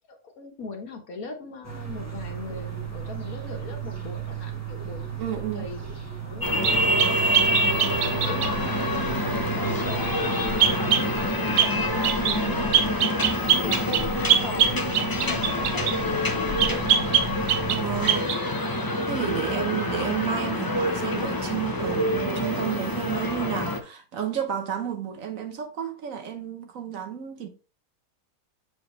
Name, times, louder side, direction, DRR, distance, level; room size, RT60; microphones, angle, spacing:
voice 1, 0.1-5.0 5.3-5.8 6.2-16.9, left 4 dB, 65° left, 1.6 m, -40 dB
sound 1, 1.6-18.2, right 6 dB, 10° right, 1.2 m, -35 dB
voice 2, 5.2-5.7 17.7-18.3 19.1-27.5, right 9 dB, 60° right, 1.2 m, -31 dB
sound 2, 6.4-23.8, left 1 dB, 20° left, 0.5 m, -26 dB
sound 3, 6.6-8.6 10.6-11.1 11.6-11.8 12.0-12.4 12.7-16.0 16.6-17.8 18.1-18.4, right 9 dB, 85° right, 1.3 m, -23 dB
7.4 x 4.8 x 3.1 m
omnidirectional pair, 1.7 m